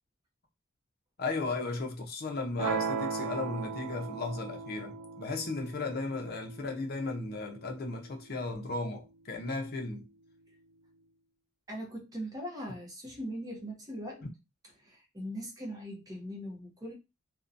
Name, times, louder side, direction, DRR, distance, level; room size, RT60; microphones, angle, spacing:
voice 1, 1.2-10.1, left 3 dB, 50° left, 0.6 m, -35 dB
sound 1, 2.6-8.6, right 5 dB, 90° right, 0.4 m, -38 dB
voice 2, 11.7-14.3 14.8-16.9, equal, 20° right, 0.7 m, -40 dB
2.6 x 2.2 x 2.5 m
head